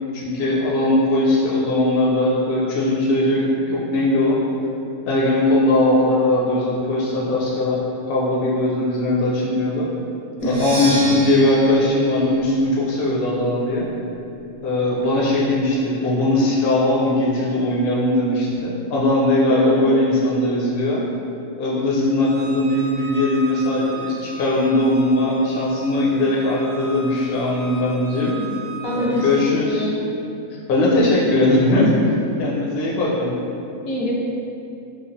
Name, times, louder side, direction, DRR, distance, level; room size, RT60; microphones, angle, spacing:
voice 1, 0.1-4.4 5.0-7.8 8.1-9.9 10.4-13.9 14.6-21.0 21.6-28.4 28.9-29.9 30.7-32.0 32.4-33.3, left 1 dB, 60° left, -5 dB, 0.6 m, -19 dB
Percussion, 10.4-14.2, right 3 dB, 55° right, 0.8 m, -28 dB
voice 2, 19.5-20.0 28.8-30.0 33.8-34.1, equal, 85° left, -4 dB, 1.1 m, -25 dB
Bowed string instrument, 22.2-29.4, right 2 dB, 80° right, 0.4 m, -37 dB
3.0 x 2.2 x 2.6 m, 2.7 s
omnidirectional pair, 1.4 m